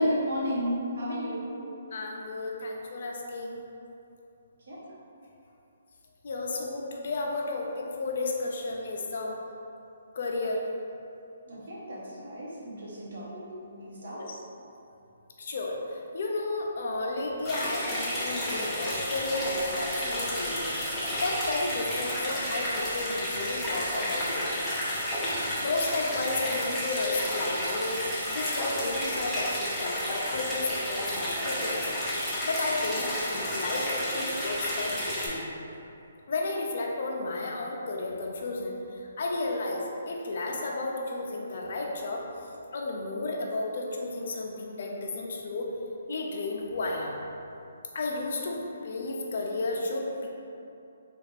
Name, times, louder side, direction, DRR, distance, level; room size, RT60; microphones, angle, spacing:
voice 1, 0.0-1.6 4.7-4.8 11.5-14.2, equal, 70° right, -7 dB, 1.1 m, -32 dB
voice 2, 1.9-3.6 6.2-9.4 10.1-10.6 14.1-14.4 15.4-20.6 21.1-24.5 25.6-28.0 28.3-31.9 32.4-35.5 36.3-38.7 39.2-42.2 42.7-45.7 46.1-47.2 47.9-50.3, left 2 dB, 55° left, 0 dB, 0.5 m, -32 dB
sound 1, 17.4-35.3, equal, 5° left, 0.7 m, -31 dB
3.3 x 2.4 x 3.3 m, 2.7 s
hypercardioid pair, 160°, 0 cm